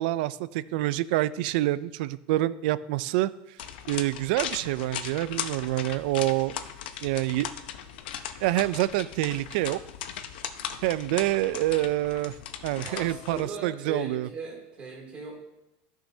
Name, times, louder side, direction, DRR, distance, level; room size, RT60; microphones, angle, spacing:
voice 1, 0.0-3.3 3.9-6.5 7.0-7.5 8.4-9.8 10.8-12.4 12.6-14.3, right 16 dB, 70° right, 17 dB, 0.4 m, -27 dB
sound 1, 3.6-13.5, left 9 dB, 85° left, 0.7 m, -38 dB
voice 2, 12.9-15.4, right 3 dB, 25° right, -2 dB, 2.6 m, -38 dB
14.5 x 6.2 x 2.7 m, 0.91 s
supercardioid pair, 150°, 5 cm